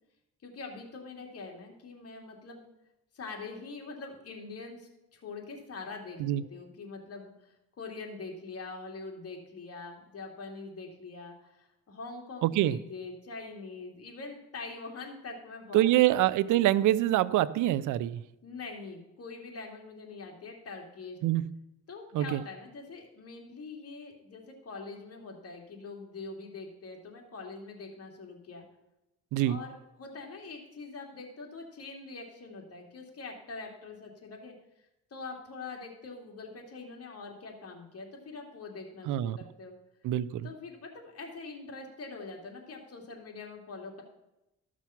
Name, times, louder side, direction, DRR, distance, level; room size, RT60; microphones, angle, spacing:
voice 1, 0.4-2.6 3.1-16.1 18.4-21.2 21.9-28.7 29.4-34.5 35.1-39.7 40.4-44.0, left 3 dB, 50° left, 1 dB, 2.7 m, -44 dB
voice 2, 12.4-12.8 15.7-18.2 21.2-21.5 22.1-22.4 29.3-29.6 39.1-39.4 40.0-40.5, right 14 dB, 80° right, 19 dB, 0.5 m, -25 dB
13.5 x 6.1 x 5.8 m, 0.91 s
cardioid pair, 90°, 30 cm